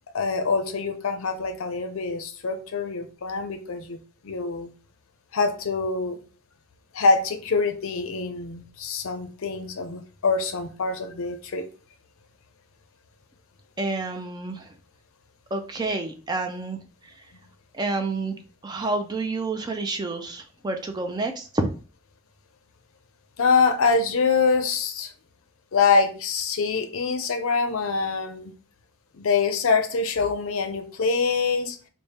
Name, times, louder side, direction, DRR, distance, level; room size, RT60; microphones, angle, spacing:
voice 1, 0.1-4.0 4.2-4.7 5.3-6.2 6.9-11.7 23.4-25.1 25.7-28.5 29.1-31.8, left 4 dB, 65° left, 0.5 m, -24 dB
voice 2, 13.8-14.7 15.5-16.8 17.7-21.7, right 3 dB, 20° right, 0.3 m, -29 dB
3.4 x 2.1 x 4.1 m
head